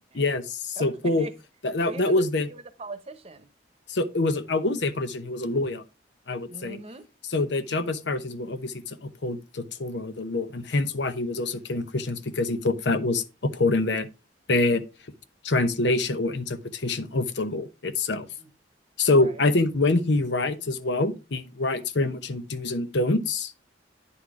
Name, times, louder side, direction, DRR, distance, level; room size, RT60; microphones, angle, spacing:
voice 1, 0.1-1.3 1.6-2.5 3.9-5.8 6.3-6.8 7.3-14.1 14.5-14.8 15.4-18.3 19.0-23.5, left 2 dB, 75° left, 0.9 m, -26 dB
voice 2, 0.8-1.3 1.8-3.5 6.5-7.1 7.8-8.0 18.4-18.5 19.2-19.4, right 2 dB, 35° right, 0.9 m, -41 dB
9.9 x 4.4 x 4.8 m
head